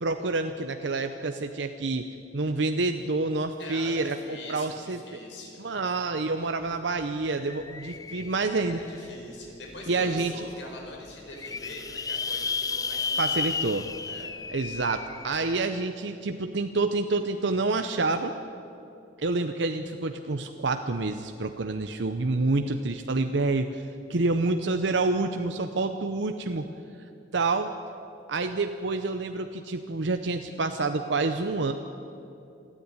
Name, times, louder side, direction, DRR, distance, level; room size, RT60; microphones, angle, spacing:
voice 1, 0.0-2.1 2.3-5.0 5.6-8.8 9.9-10.3 13.2-13.9 14.5-18.4 19.2-26.7 27.3-27.7 28.3-31.7, right 3 dB, 70° right, 7 dB, 0.8 m, -28 dB
voice 2, 3.6-5.6 8.7-13.3 14.1-14.3, left 2 dB, 75° left, 0 dB, 5.2 m, -43 dB
sound 1, 6.6-6.7 7.0-9.1 9.7-9.8 10.2-10.3 10.4-10.5 11.1-15.7, left 5 dB, 20° left, 0.5 m, -33 dB
27.5 x 10.0 x 9.7 m, 2.8 s
head